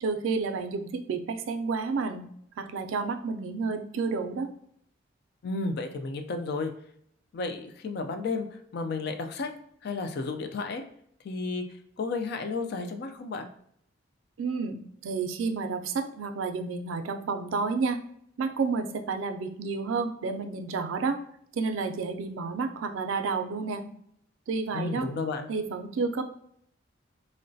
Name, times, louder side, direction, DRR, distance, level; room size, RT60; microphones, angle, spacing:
voice 1, 0.0-2.3 2.6-4.5 14.4-14.8 15.0-18.0 18.4-21.2 21.5-23.8 24.5-25.1 25.5-26.2, right 4 dB, 90° right, 7 dB, 0.4 m, -30 dB
voice 2, 5.4-6.7 7.3-9.5 9.8-10.8 11.2-11.6 12.0-13.5 24.7-25.5, left 3 dB, 55° left, 6 dB, 0.3 m, -32 dB
3.7 x 2.1 x 2.6 m, 0.69 s
head